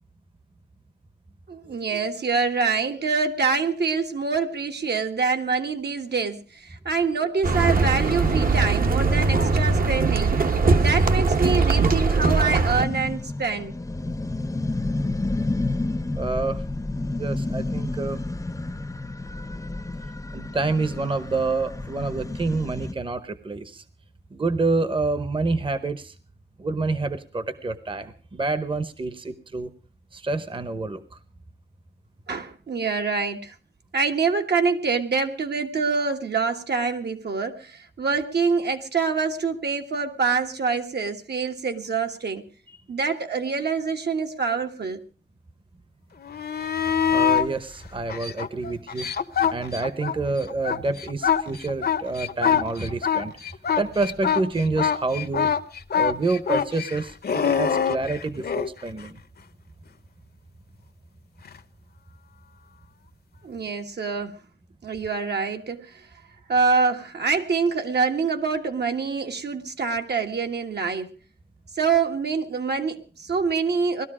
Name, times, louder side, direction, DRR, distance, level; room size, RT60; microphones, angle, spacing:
voice 1, 1.5-10.3 10.7-13.8 32.3-33.5 33.9-42.5 42.9-45.0 63.4-64.4 64.8-66.1 66.5-71.2 71.8-74.1, right 5 dB, 70° right, 4 dB, 1.6 m, -25 dB
sound 1, 7.4-12.8, right 3 dB, 55° right, 1.1 m, -21 dB
sound 2, 12.8-22.9, left 2 dB, 20° left, 0.7 m, -30 dB
voice 2, 16.1-16.6 17.1-18.2 20.3-23.8 24.3-26.1 26.6-29.7 30.1-31.0 47.1-49.1 49.5-53.4 53.8-55.5 56.0-59.2, right 3 dB, 30° right, 12 dB, 0.9 m, -27 dB
sound 3, 46.2-47.5 48.1-50.2 50.5-58.7 61.4-61.6, left 8 dB, 60° left, 0.9 m, -24 dB
19.0 x 13.0 x 4.9 m, 0.38 s
wide cardioid pair, 130°, 18 cm